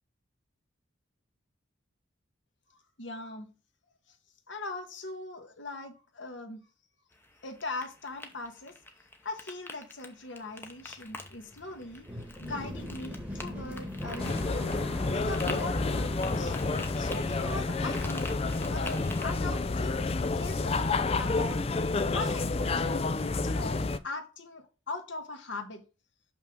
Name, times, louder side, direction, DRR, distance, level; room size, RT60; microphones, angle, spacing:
voice 1, 3.0-3.5 4.5-6.6 7.4-8.7 9.2-12.1 12.4-14.7 15.1-16.6 17.0-18.3 18.7-21.6 22.1-25.8, left 2 dB, 65° left, 1.4 m, -40 dB
sound 1, 7.1-19.2, left 2 dB, 10° left, 0.8 m, -47 dB
sound 2, 10.6-20.7 21.0-21.8, equal, 5° right, 1.2 m, -42 dB
sound 3, 14.2-24.0, left 3 dB, 30° left, 0.4 m, -29 dB
6.1 x 5.9 x 3.6 m
head